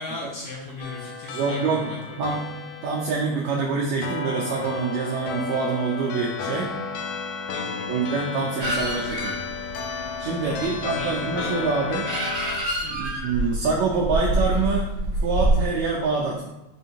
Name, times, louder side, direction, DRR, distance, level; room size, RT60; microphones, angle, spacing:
voice 1, 0.0-2.4 7.5-8.1 10.4-11.6 12.8-13.0, left 2 dB, 75° left, -4 dB, 1.8 m, -37 dB
sound 1, 0.8-12.6, left 5 dB, 90° left, 2.2 m, -33 dB
voice 2, 1.3-1.9 2.2-2.4 2.8-6.7 7.9-9.4 10.2-12.1 13.0-14.9 15.2-16.5, right 4 dB, 85° right, -3 dB, 1.6 m, -25 dB
sound 2, 8.6-15.6, right 1 dB, 65° right, 1.0 m, -27 dB
5.2 x 3.5 x 2.8 m, 0.97 s
omnidirectional pair, 3.7 m